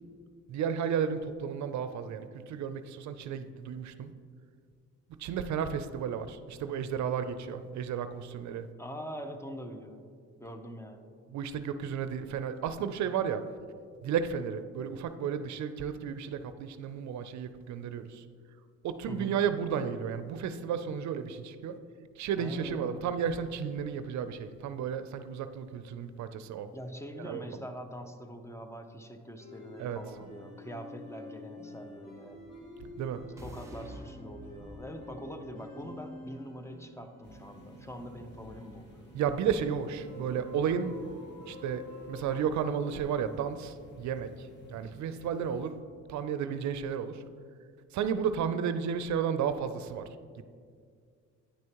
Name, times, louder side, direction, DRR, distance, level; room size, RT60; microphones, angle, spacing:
voice 1, 0.5-4.1 5.2-8.7 11.3-13.4 14.0-18.2 18.8-21.8 22.2-26.7 27.2-27.4 29.8-30.0 33.0-33.2 39.1-40.9 41.5-41.8 42.1-45.8 46.1-47.2 47.9-50.1 50.4-50.5, right 7 dB, 70° right, 10 dB, 0.5 m, -33 dB
voice 2, 8.8-10.1 10.4-11.2 19.1-19.4 22.4-23.1 26.7-32.4 33.4-38.9, equal, 10° left, 6 dB, 0.6 m, -43 dB
sound 1, 29.4-42.6, left 2 dB, 60° left, 1.6 m, -49 dB
sound 2, 32.2-36.4, equal, 10° right, 1.1 m, -51 dB
sound 3, 37.2-45.7, equal, 35° left, 1.1 m, -54 dB
9.6 x 6.2 x 3.0 m, 2.1 s
cardioid pair, 90°, 30 cm